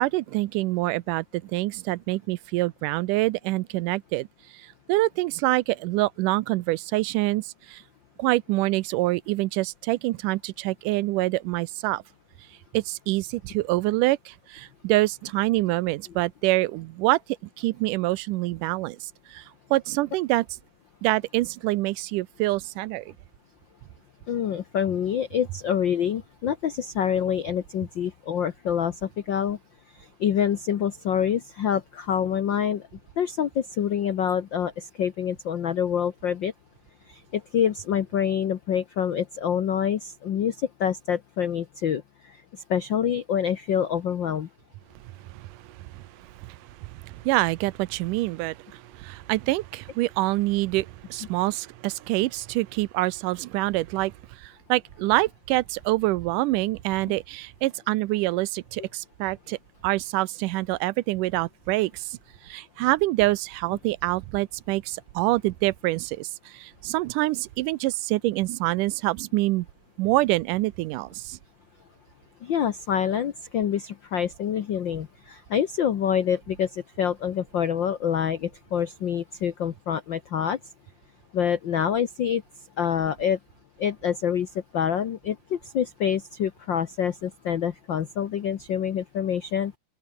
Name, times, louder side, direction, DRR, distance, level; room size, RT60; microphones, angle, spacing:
voice 1, 0.0-4.3 4.5-7.8 8.2-12.0 12.7-17.2 17.6-19.4 19.7-20.5 21.0-23.1 45.3-46.0 46.4-54.1 54.4-59.6 59.8-62.2 62.4-69.7 70.0-71.4, right 19 dB, 85° right, 2.2 m, -26 dB
voice 2, 24.3-29.6 30.0-32.8 33.2-36.5 37.1-42.0 42.7-44.5 57.1-57.2 72.4-80.6 81.3-82.4 82.8-83.4 83.8-89.7, left 8 dB, 85° left, 1.0 m, -26 dB
open air
omnidirectional pair, 3.7 m